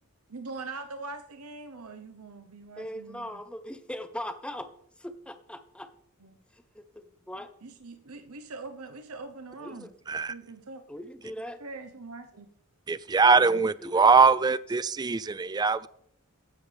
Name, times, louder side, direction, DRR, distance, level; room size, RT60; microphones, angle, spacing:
voice 1, 0.3-3.4 6.2-6.4 7.6-9.9 10.3-10.8 11.6-12.5 13.3-13.6, right 3 dB, 80° right, 7 dB, 1.0 m, -42 dB
voice 2, 2.8-4.7 5.0-5.9 6.5-7.5 9.6-9.9 10.9-11.6 13.2-14.1, equal, 5° left, 10 dB, 0.8 m, -40 dB
voice 3, 12.9-15.9, right 4 dB, 20° right, 17 dB, 0.3 m, -22 dB
14.5 x 10.0 x 3.4 m, 0.71 s
head